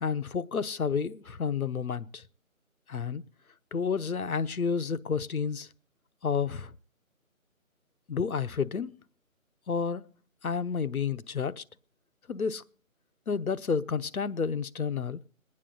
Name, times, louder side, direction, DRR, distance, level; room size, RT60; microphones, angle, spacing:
voice 1, 0.0-2.2 2.9-3.3 3.7-5.7 6.2-6.7 8.1-8.9 9.7-10.1 10.4-11.6 12.3-12.6 13.3-15.2, left 6 dB, 85° left, 0.9 m, -30 dB
22.0 x 9.8 x 3.8 m
figure-of-eight pair, 170°, 42 cm